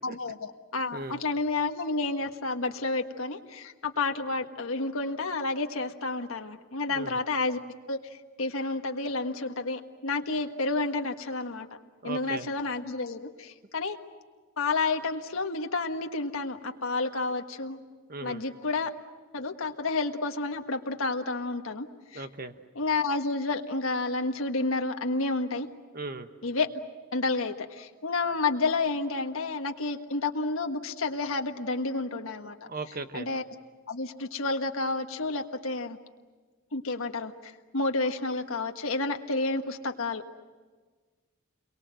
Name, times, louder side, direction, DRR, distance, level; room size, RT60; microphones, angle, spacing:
voice 1, 0.0-7.6 7.9-11.7 12.0-14.0 14.6-17.8 18.2-18.9 19.3-21.9 22.1-22.2 22.7-25.7 26.4-26.7 27.1-32.5 33.1-33.4 33.9-36.0 36.7-40.2, left 3 dB, 75° left, 5 dB, 1.5 m, -30 dB
voice 2, 0.9-1.2 6.9-7.2 12.0-12.5 18.1-18.4 22.1-22.5 25.9-26.3 32.6-33.3, right 3 dB, 45° right, 9 dB, 1.2 m, -38 dB
29.5 x 23.0 x 7.7 m, 1.4 s
head